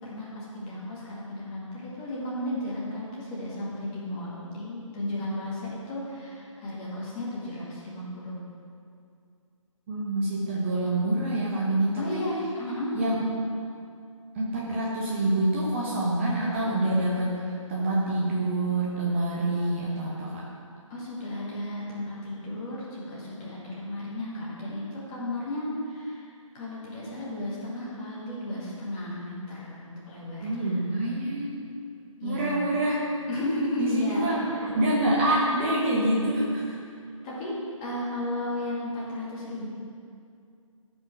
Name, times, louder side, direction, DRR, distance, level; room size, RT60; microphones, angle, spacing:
voice 1, 0.0-8.4 12.0-12.9 20.9-26.3 26.5-30.8 32.2-32.6 33.3-34.6 37.2-37.5 37.8-39.7, left 1 dB, 15° left, -7 dB, 2.1 m, -34 dB
voice 2, 9.9-12.3 12.9-13.3 14.3-20.4 30.4-31.6 32.2-33.2 33.8-36.8, right 1 dB, 20° right, -5 dB, 1.1 m, -26 dB
13.5 x 5.4 x 6.0 m, 2.4 s
figure-of-eight pair, 145°, 17 cm